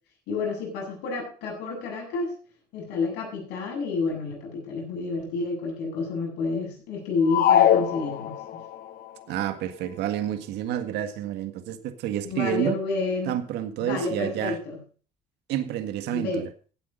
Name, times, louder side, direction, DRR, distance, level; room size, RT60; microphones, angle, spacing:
voice 1, 0.3-2.3 2.7-8.4 12.2-13.4 13.8-14.8 16.1-16.4, left 3 dB, 90° left, -1 dB, 7.8 m, -29 dB
sound 1, 7.3-8.8, left 10 dB, 60° left, 1.3 m, -21 dB
voice 2, 9.3-12.7 13.3-14.6 15.5-16.5, right 11 dB, 85° right, 9 dB, 1.7 m, -29 dB
15.5 x 8.6 x 5.3 m, 0.40 s
cardioid pair, 110°, 17 cm